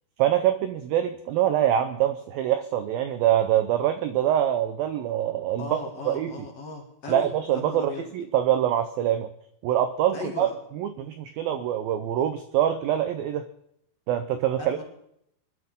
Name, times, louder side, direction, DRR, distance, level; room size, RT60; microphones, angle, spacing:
voice 1, 0.2-5.7 6.1-6.3 7.1-9.3 9.6-10.5 10.8-13.5 14.1-14.8, right 11 dB, 90° right, 10 dB, 2.0 m, -24 dB
voice 2, 5.6-8.0 10.1-10.6 14.6-14.8, left 3 dB, 45° left, 1 dB, 2.4 m, -37 dB
24.0 x 12.0 x 3.6 m, 0.75 s
omnidirectional pair, 5.1 m